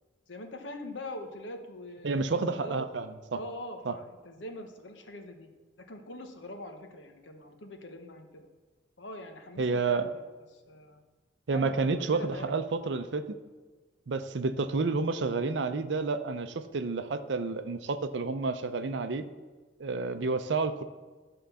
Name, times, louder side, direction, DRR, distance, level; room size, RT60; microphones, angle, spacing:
voice 1, 0.3-2.8 3.3-5.5 5.9-8.5 9.0-10.2 10.5-11.0 11.5-12.5, left 1 dB, 80° left, 5 dB, 1.0 m, -43 dB
voice 2, 2.0-3.4 3.9-4.0 9.6-10.1 11.5-13.4 14.1-19.3 19.8-20.8, right 4 dB, 70° right, 10 dB, 0.6 m, -30 dB
11.5 x 3.8 x 6.9 m, 1.3 s
head